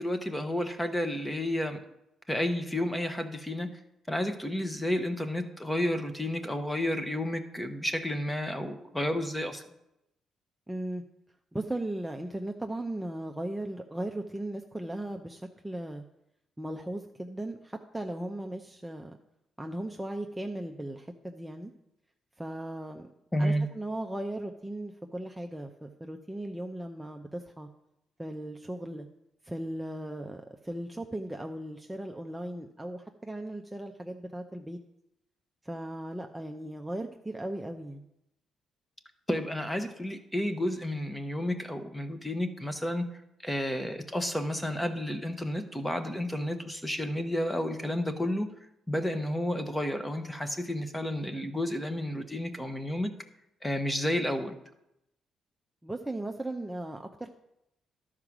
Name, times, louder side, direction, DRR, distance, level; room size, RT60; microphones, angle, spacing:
voice 1, 0.0-1.8 2.3-3.8 4.1-9.6 23.3-23.7 39.3-43.1 43.4-48.5 48.9-53.1 53.6-54.6, left 1 dB, 10° left, 8 dB, 1.0 m, -31 dB
voice 2, 10.7-11.0 11.5-16.0 16.6-19.2 19.6-21.7 22.4-23.1 23.4-27.7 28.2-29.1 29.4-34.8 35.6-38.0 55.8-57.3, right 1 dB, 10° right, 3 dB, 0.6 m, -37 dB
12.0 x 4.9 x 6.0 m, 0.86 s
cardioid pair, 90°, 0 cm